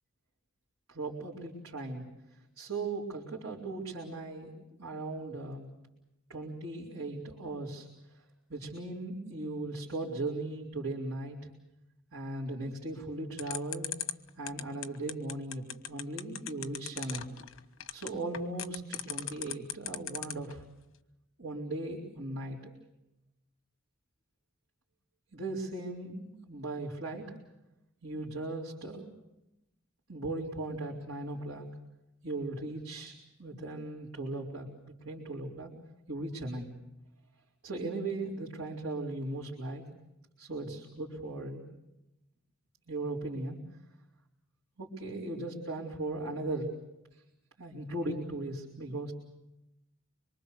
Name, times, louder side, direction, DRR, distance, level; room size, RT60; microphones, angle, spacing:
voice 1, 0.9-2.0 2.6-5.7 6.3-7.9 8.5-11.4 12.1-13.9 14.4-17.3 17.9-20.6 21.4-22.7 25.3-27.2 28.0-29.1 30.1-31.7 32.2-33.1 33.4-35.7 36.1-36.7 37.6-39.8 40.4-41.6 42.9-43.6 44.8-46.7 47.6-49.1, right 2 dB, 80° right, -6 dB, 4.3 m, -38 dB
sound 1, 13.4-20.5, left 10 dB, 65° left, 1.2 m, -37 dB
26.0 x 24.0 x 6.8 m, 0.91 s
head